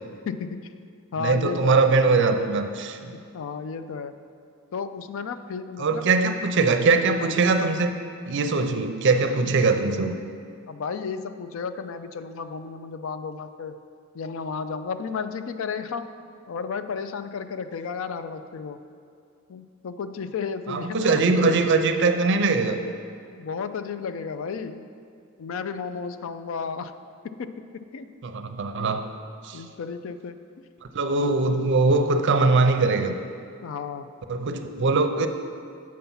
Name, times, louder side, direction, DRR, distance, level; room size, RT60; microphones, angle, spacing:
voice 1, 0.3-0.6 1.1-1.8 3.1-4.2 4.7-6.3 10.7-13.8 14.1-16.1 16.5-18.8 19.5-21.6 23.3-24.9 25.4-27.0 27.2-28.1 28.8-29.0 29.5-30.5 33.6-34.2, left 5 dB, 70° left, 11 dB, 0.4 m, -33 dB
voice 2, 1.2-3.1 5.8-8.0 8.3-10.1 20.7-22.8 28.2-29.0 29.4-29.6 30.9-33.1 34.3-35.3, right 3 dB, 60° right, 7 dB, 0.5 m, -21 dB
7.5 x 5.7 x 5.5 m, 2.3 s
head